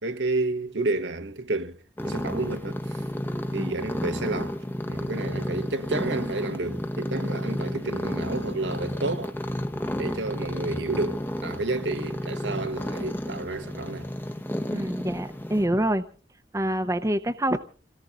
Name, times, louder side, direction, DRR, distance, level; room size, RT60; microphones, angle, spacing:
voice 1, 0.0-1.8 2.0-3.0 3.5-4.6 4.9-9.4 9.9-14.1, right 2 dB, 85° right, 1.2 m, -30 dB
sound 1, 2.0-15.7, left 1 dB, 10° left, 0.9 m, -32 dB
voice 2, 14.7-16.1 16.5-17.6, right 1 dB, 15° right, 0.7 m, -26 dB
28.0 x 18.0 x 2.6 m
head